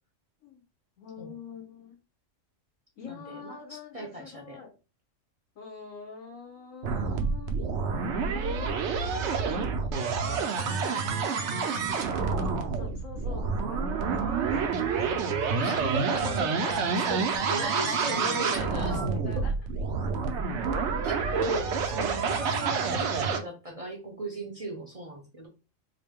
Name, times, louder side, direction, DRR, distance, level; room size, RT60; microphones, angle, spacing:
voice 1, 1.0-2.0 3.0-4.7 5.5-7.5 8.6-9.5 10.0-12.4 12.7-19.7, left 4 dB, 90° left, 2 dB, 1.4 m, -46 dB
voice 2, 3.0-4.6 15.6-16.5 17.1-19.0 20.9-25.5, right 2 dB, 35° right, 0 dB, 0.6 m, -36 dB
sound 1, 6.8-23.4, right 5 dB, 65° right, 0.9 m, -28 dB
3.8 x 2.1 x 3.5 m, 0.31 s
omnidirectional pair, 1.4 m